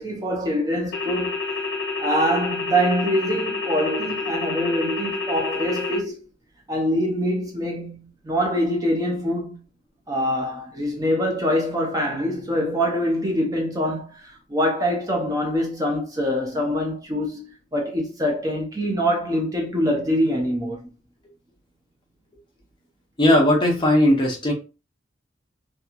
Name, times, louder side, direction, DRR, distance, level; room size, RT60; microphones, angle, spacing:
voice 1, 0.0-1.4 2.0-6.2 6.7-9.6 10.1-20.9, equal, 20° right, 0.5 m, -24 dB
sound 1, 0.9-6.0, left 4 dB, 60° left, 0.7 m, -28 dB
voice 2, 23.2-24.5, left 1 dB, 25° left, 0.7 m, -17 dB
2.9 x 2.3 x 2.4 m
head